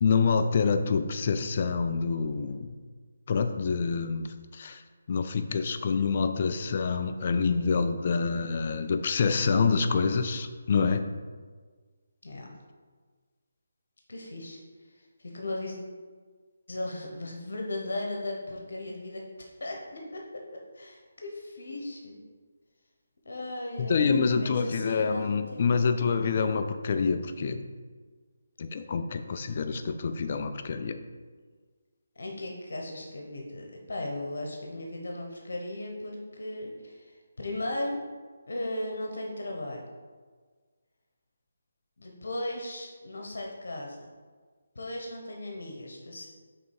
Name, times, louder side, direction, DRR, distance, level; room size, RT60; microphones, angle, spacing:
voice 1, 0.0-2.8 3.3-4.8 5.1-11.0 23.8-27.6 28.6-31.0, left 5 dB, 40° left, 8 dB, 0.4 m, -27 dB
voice 2, 14.1-14.6 14.9-15.8 16.7-22.2 23.2-25.9 32.2-38.0 38.5-39.8 42.0-44.1 44.7-46.3, left 1 dB, 75° left, 0 dB, 1.0 m, -37 dB
5.5 x 3.8 x 4.8 m, 1.5 s
hypercardioid pair, 170°, 0 cm